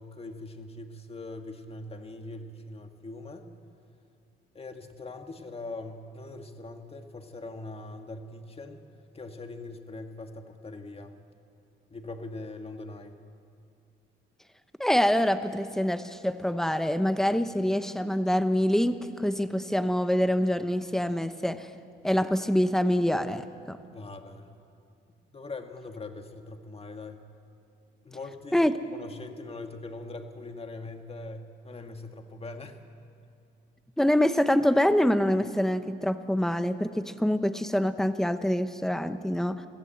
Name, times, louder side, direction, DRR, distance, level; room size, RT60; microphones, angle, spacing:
voice 1, 0.0-3.5 4.5-8.8 9.1-11.2 11.9-13.2 23.9-24.5 25.3-27.2 28.0-32.8, left 2 dB, 30° left, 5 dB, 1.8 m, -42 dB
voice 2, 14.8-21.7 22.0-23.8 28.5-28.7 34.0-39.7, equal, ahead, 10 dB, 0.9 m, -25 dB
22.0 x 15.0 x 7.7 m, 2.4 s
cardioid pair, 90°, 20 cm